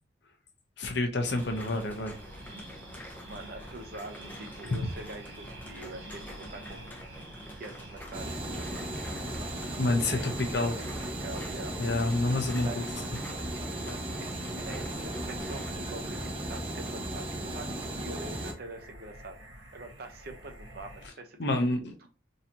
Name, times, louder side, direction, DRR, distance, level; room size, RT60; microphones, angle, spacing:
voice 1, 0.8-2.1 4.8-4.9 9.8-10.2 10.5-10.7 11.8-12.7 21.4-22.1, left 2 dB, 65° left, 0.8 m, -28 dB
sound 1, 1.2-15.7, equal, 10° left, 0.6 m, -47 dB
sound 2, 1.3-21.1, right 1 dB, 70° right, 1.3 m, -49 dB
voice 2, 3.3-7.0 7.6-8.6 9.7-10.3 10.5-11.8 12.6-12.8 13.4-19.4 19.7-21.7 22.0-22.1, right 2 dB, 55° right, 0.7 m, -45 dB
sound 3, 8.1-18.5, right 1 dB, 30° right, 0.8 m, -36 dB
3.9 x 2.8 x 2.8 m
head